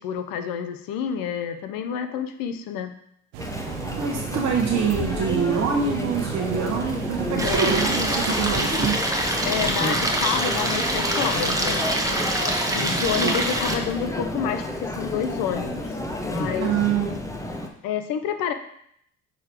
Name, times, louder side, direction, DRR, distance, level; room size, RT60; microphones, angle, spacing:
voice 1, 0.0-2.9 7.3-7.7 9.4-11.8 12.7-15.9 16.2-16.8 17.8-18.5, left 8 dB, 70° left, 8 dB, 0.8 m, -28 dB
sound 1, 3.3-8.3, right 13 dB, 85° right, 0.5 m, -34 dB
Chatter, 3.4-17.7, left 1 dB, 10° left, 0.9 m, -31 dB
voice 2, 4.0-9.0 12.7-13.3 16.6-17.1, right 6 dB, 50° right, 0 dB, 1.1 m, -25 dB
Stream, 7.4-13.7, right 1 dB, 10° right, 1.2 m, -25 dB
6.4 x 3.9 x 4.5 m, 0.70 s
supercardioid pair, 75°, 36 cm